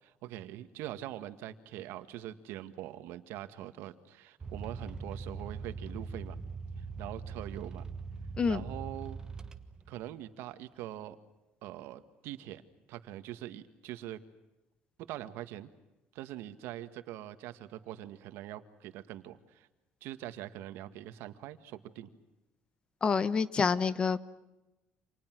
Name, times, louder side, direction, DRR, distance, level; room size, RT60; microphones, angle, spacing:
voice 1, 0.0-6.4 6.8-7.8 8.5-9.2 9.9-11.2 11.6-12.6 12.9-14.2 15.1-15.7 16.1-19.7 20.0-22.1, right 13 dB, 90° right, 10 dB, 1.8 m, -43 dB
sound 1, 4.4-10.0, right 4 dB, 20° right, 1.3 m, -42 dB
voice 2, 23.0-24.2, left 5 dB, 25° left, 16 dB, 0.9 m, -27 dB
29.5 x 27.5 x 6.3 m, 1.0 s
cardioid pair, 170°, 4 cm